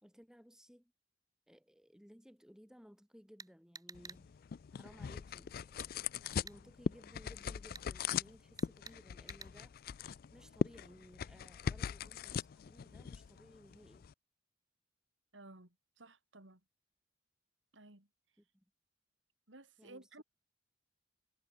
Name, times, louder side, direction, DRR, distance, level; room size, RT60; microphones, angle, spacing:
voice 1, 0.0-0.9 1.5-4.4 4.7-6.0 6.4-9.8 10.3-14.1 18.4-18.6 19.8-20.2, equal, 5° right, 2.4 m, -60 dB
sound 1, 3.4-4.2 5.8-5.9 6.5-6.6 7.7-7.9 8.6-9.0 9.3-9.5, right 4 dB, 20° right, 1.9 m, -50 dB
sound 2, 3.9-14.1, left 7 dB, 50° left, 0.3 m, -41 dB
voice 2, 15.3-16.6 17.7-18.1 19.5-20.2, right 2 dB, 80° right, 4.1 m, -56 dB
head